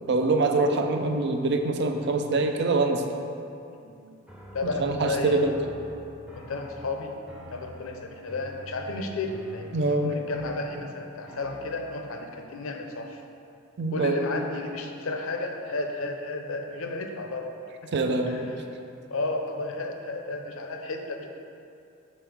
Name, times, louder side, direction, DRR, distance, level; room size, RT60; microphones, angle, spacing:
voice 1, 0.1-3.0 4.8-5.5 9.7-10.1 13.8-14.2 17.9-18.5, right 3 dB, 50° right, 5 dB, 0.5 m, -24 dB
sound 1, 4.3-12.3, equal, 5° right, 0.6 m, -46 dB
voice 2, 4.5-5.4 6.3-7.2 7.5-13.2 13.9-17.6 17.8-18.5 19.1-21.3, left 2 dB, 70° left, 4 dB, 0.6 m, -33 dB
5.2 x 4.3 x 6.0 m, 2.6 s
head